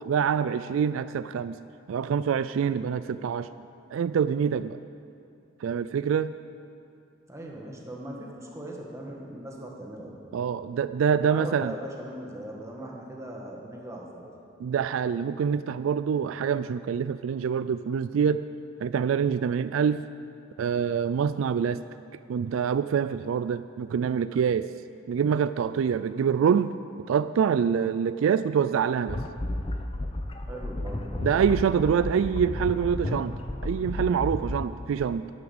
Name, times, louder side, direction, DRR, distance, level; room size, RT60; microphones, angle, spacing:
voice 1, 0.1-1.6 1.9-3.5 3.9-4.8 5.6-6.3 10.3-11.7 14.6-18.4 18.8-20.0 20.6-21.8 22.3-24.7 25.1-26.7 27.1-29.2 31.2-33.3 33.6-35.3, right 7 dB, 85° right, 14 dB, 0.3 m, -25 dB
voice 2, 7.3-10.1 11.1-14.3 30.5-31.3, right 1 dB, 15° right, -2 dB, 1.5 m, -39 dB
sound 1, 29.1-34.6, left 1 dB, 25° left, 0.7 m, -32 dB
11.0 x 9.7 x 7.1 m, 2.6 s
head